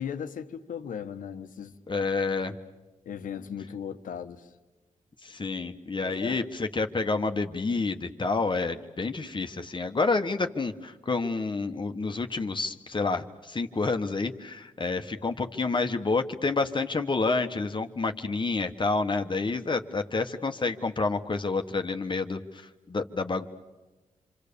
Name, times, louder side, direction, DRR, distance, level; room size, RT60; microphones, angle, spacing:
voice 1, 0.0-1.7 3.0-4.5 6.0-6.5, left 8 dB, 85° left, 1.3 m, -37 dB
voice 2, 1.9-2.5 5.2-22.4 22.9-23.5, left 3 dB, 35° left, 1.5 m, -29 dB
27.5 x 25.5 x 7.0 m
cardioid pair, 65°, 14 cm